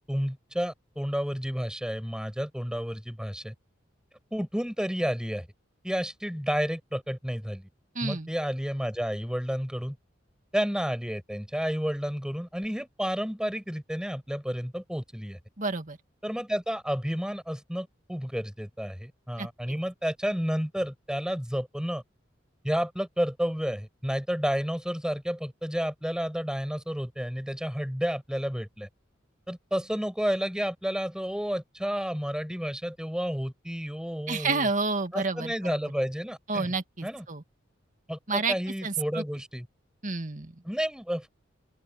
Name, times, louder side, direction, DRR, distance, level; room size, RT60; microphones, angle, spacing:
voice 1, 0.1-3.5 4.3-5.5 5.8-7.7 8.0-10.0 10.5-15.4 16.2-22.0 22.6-28.9 29.5-34.7 35.1-36.7 37.0-37.2 38.1-39.7 40.6-41.3, equal, 5° right, 6.6 m, -31 dB
voice 2, 8.0-8.3 15.6-16.0 19.4-19.8 34.3-35.9 36.5-37.4 38.3-38.5 38.8-39.2 40.0-40.5, right 3 dB, 45° right, 1.9 m, -30 dB
open air
head